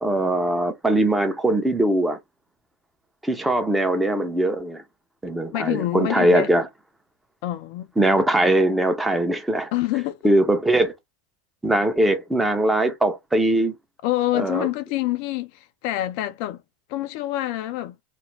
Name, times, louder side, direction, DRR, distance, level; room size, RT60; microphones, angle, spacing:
voice 1, 0.0-2.2 3.2-4.8 5.2-6.7 8.0-9.7 10.2-10.9 11.6-13.8 14.3-14.7, right 1 dB, 5° right, 0.6 m, -21 dB
voice 2, 5.5-6.5 7.4-7.9 9.7-10.4 14.0-16.6 16.9-18.0, left 15 dB, 60° left, 0.3 m, -26 dB
2.4 x 2.1 x 3.1 m
hypercardioid pair, 110°, 0 cm